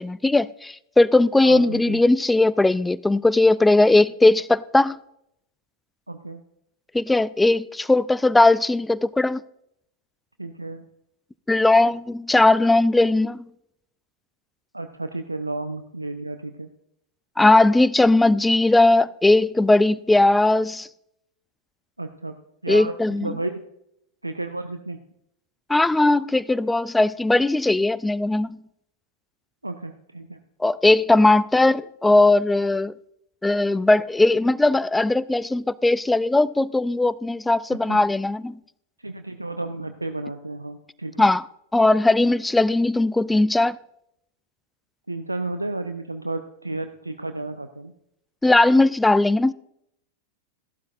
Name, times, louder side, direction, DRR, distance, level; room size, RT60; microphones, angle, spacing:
voice 1, 0.0-5.0 6.9-9.4 11.5-13.4 17.4-20.9 22.7-23.3 25.7-28.6 30.6-32.9 33.4-38.6 41.2-41.4 41.7-43.8 48.4-49.5, left 2 dB, 5° left, 0.3 m, -18 dB
voice 2, 1.4-2.0 6.1-6.4 10.4-10.9 14.7-16.7 22.0-22.4 22.6-22.9 23.2-23.6 24.2-25.0 29.6-30.4 37.9-38.0 39.0-41.3 45.1-47.9, right 2 dB, 85° right, 0.5 m, -32 dB
14.5 x 12.0 x 2.5 m
figure-of-eight pair, 90°, 0 cm